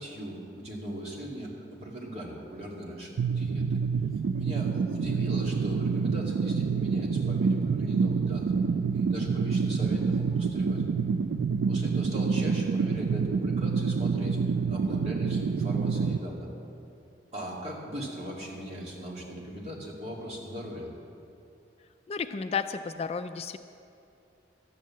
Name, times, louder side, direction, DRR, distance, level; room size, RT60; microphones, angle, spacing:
voice 1, 0.0-1.5 1.8-3.8 4.4-8.5 8.9-10.8 11.6-14.4 14.7-16.5 17.3-20.9, equal, 35° right, -4 dB, 2.4 m, -39 dB
sound 1, 3.2-16.2, right 5 dB, 70° right, 0.3 m, -27 dB
voice 2, 22.1-23.6, left 5 dB, 35° left, 9 dB, 0.3 m, -32 dB
12.5 x 9.2 x 7.4 m, 2.7 s
head